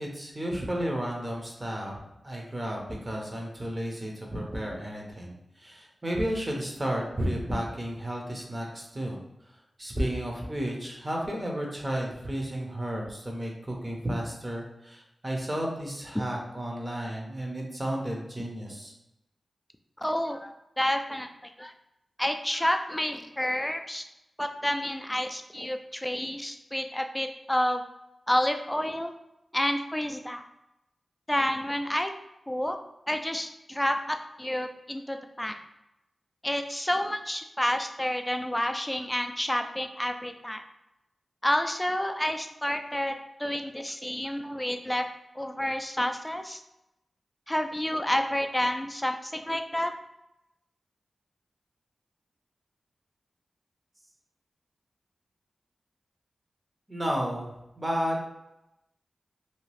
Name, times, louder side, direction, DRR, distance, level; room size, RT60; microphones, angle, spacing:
voice 1, 0.0-9.2 9.8-18.9 56.9-58.2, equal, 30° right, -1 dB, 0.7 m, -32 dB
voice 2, 20.0-21.7 22.2-24.0 24.4-27.8 28.3-29.1 29.5-30.4 31.3-32.1 32.5-32.8 33.1-35.5 36.4-40.6 41.4-43.1 43.4-45.0 45.4-46.6 47.5-49.9, left 1 dB, 10° left, 6 dB, 0.3 m, -29 dB
2.8 x 2.3 x 3.1 m, 0.90 s
cardioid pair, 60°, 0 cm